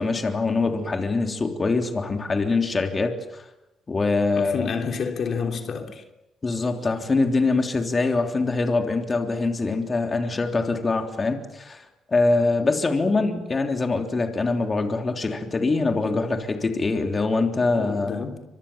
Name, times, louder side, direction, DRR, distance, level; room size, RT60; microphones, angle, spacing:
voice 1, 0.0-3.5 3.9-4.7 6.4-18.2, left 3 dB, 30° left, 3.4 m, -24 dB
voice 2, 4.3-6.0 17.8-18.4, left 5 dB, 55° left, 3.5 m, -29 dB
29.5 x 25.5 x 7.2 m
cardioid pair, 90°, 0 cm